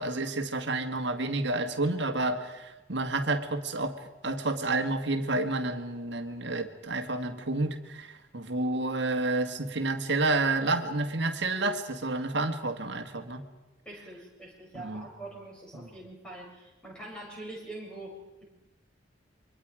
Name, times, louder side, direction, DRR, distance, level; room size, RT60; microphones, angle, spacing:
voice 1, 0.0-13.4 14.8-15.1 15.7-15.9, right 2 dB, 65° right, 5 dB, 1.9 m, -30 dB
voice 2, 13.9-18.4, right 2 dB, 5° left, -3 dB, 7.0 m, -44 dB
29.0 x 24.0 x 5.0 m, 1.0 s
head